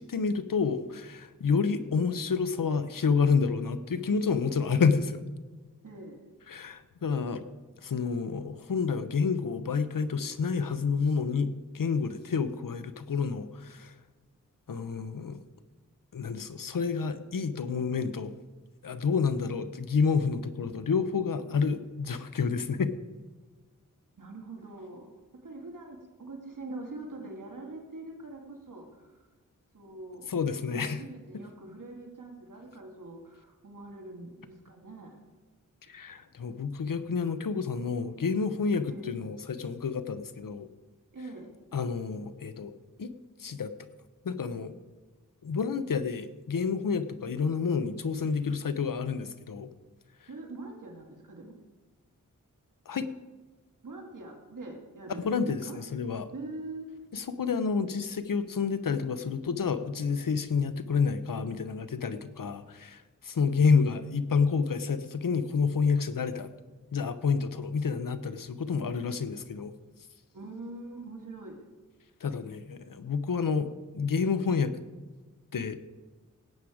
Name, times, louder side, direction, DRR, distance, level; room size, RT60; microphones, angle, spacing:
voice 1, 0.0-5.2 6.5-7.4 7.8-13.9 14.7-15.4 16.1-18.3 18.8-22.9 30.3-31.0 35.9-40.7 41.7-42.7 43.0-43.1 43.4-43.7 44.2-44.7 45.4-49.7 52.9-53.1 55.2-56.3 57.1-66.5 66.9-69.7 72.2-73.7 73.9-74.7 75.5-75.9, left 5 dB, 85° left, 11 dB, 0.8 m, -29 dB
voice 2, 5.8-6.3 21.4-21.7 24.2-25.1 25.4-29.3 29.7-30.3 30.7-35.2 38.8-39.1 41.1-41.5 50.3-51.6 53.8-55.8 56.3-56.9 70.3-71.6, right 2 dB, 70° right, 1 dB, 2.0 m, -43 dB
17.0 x 8.6 x 4.9 m, 1.3 s
wide cardioid pair, 90°, 32 cm